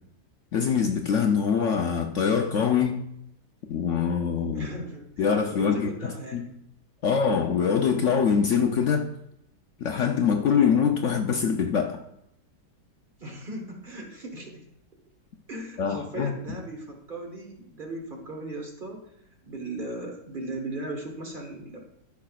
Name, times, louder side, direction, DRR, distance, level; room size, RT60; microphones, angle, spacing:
voice 1, 0.5-3.1 3.7-4.7 5.2-6.5 7.0-9.1 9.8-12.0 15.8-16.4, left 6 dB, 70° left, 4 dB, 0.7 m, -24 dB
voice 2, 4.5-6.5 13.2-14.7 15.5-19.1 19.4-21.8, right 2 dB, 35° right, 1 dB, 1.2 m, -37 dB
13.0 x 5.8 x 2.3 m, 0.77 s
omnidirectional pair, 1.9 m